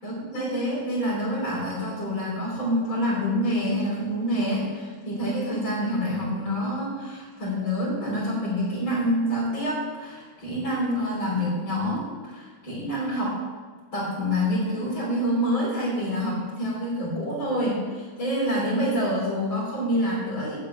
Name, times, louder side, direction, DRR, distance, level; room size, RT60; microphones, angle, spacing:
voice 1, 0.0-13.4 13.9-20.6, equal, 75° left, -10 dB, 4.5 m, -27 dB
8.2 x 7.7 x 8.9 m, 1.5 s
omnidirectional pair, 2.2 m